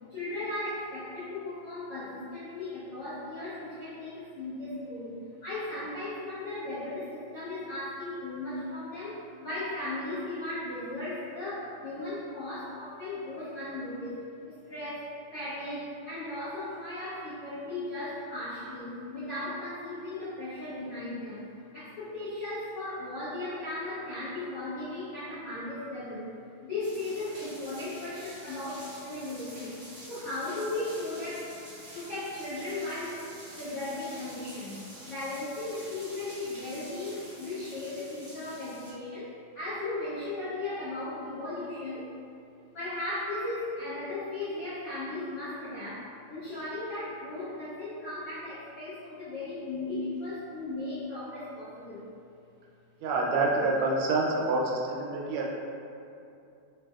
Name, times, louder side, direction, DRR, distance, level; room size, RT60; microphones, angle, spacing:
voice 1, 0.1-14.1 14.4-26.3 26.6-29.8 30.1-31.5 31.9-33.2 33.6-34.8 35.1-42.1 42.7-52.0, left 2 dB, 75° left, -13 dB, 0.8 m, -36 dB
sound 1, 26.8-38.9, right 1 dB, 50° right, 1.1 m, -48 dB
voice 2, 53.0-55.5, right 2 dB, 85° right, -2 dB, 1.5 m, -27 dB
3.5 x 2.5 x 2.3 m, 2.6 s
omnidirectional pair, 2.4 m